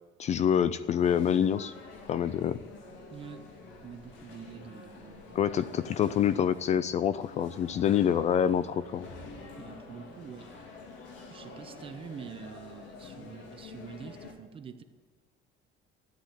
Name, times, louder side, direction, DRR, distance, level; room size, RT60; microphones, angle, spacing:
voice 1, 0.2-1.7 2.1-2.6 5.4-9.1, left 9 dB, 35° left, 15 dB, 0.4 m, -26 dB
sound 1, 0.7-14.3, left 3 dB, 70° left, 3.0 m, -48 dB
voice 2, 3.1-3.4 3.8-5.4 9.6-10.7 11.3-14.8, right 6 dB, 25° right, 9 dB, 0.9 m, -46 dB
13.5 x 9.8 x 8.9 m, 1.5 s
cardioid pair, 180°, 20 cm